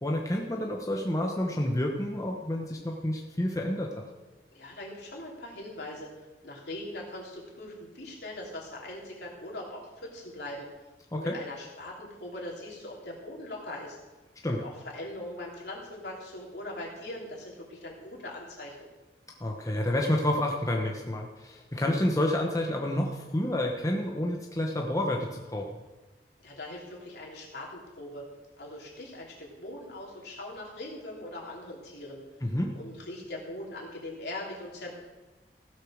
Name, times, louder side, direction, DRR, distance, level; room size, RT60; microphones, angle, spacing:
voice 1, 0.0-3.9 11.1-11.4 14.4-14.6 19.4-25.7 32.4-32.7, left 1 dB, 20° left, 0 dB, 0.9 m, -29 dB
voice 2, 4.5-14.0 14.5-18.9 26.4-28.2 28.6-32.2 32.7-35.0, left 1 dB, 65° left, -3 dB, 3.3 m, -41 dB
15.5 x 6.4 x 6.4 m, 1.2 s
head